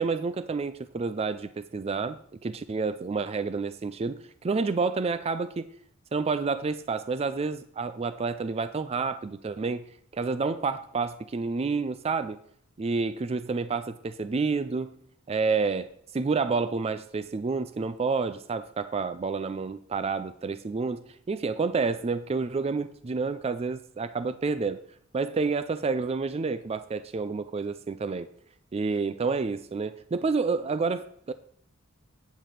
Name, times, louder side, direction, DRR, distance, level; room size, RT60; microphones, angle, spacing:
voice 1, 0.0-5.7 6.1-9.8 10.1-12.4 12.8-14.9 15.3-24.8 25.1-28.3 28.7-31.3, right 4 dB, 30° right, 12 dB, 0.4 m, -29 dB
9.3 x 5.1 x 5.7 m, 0.65 s
head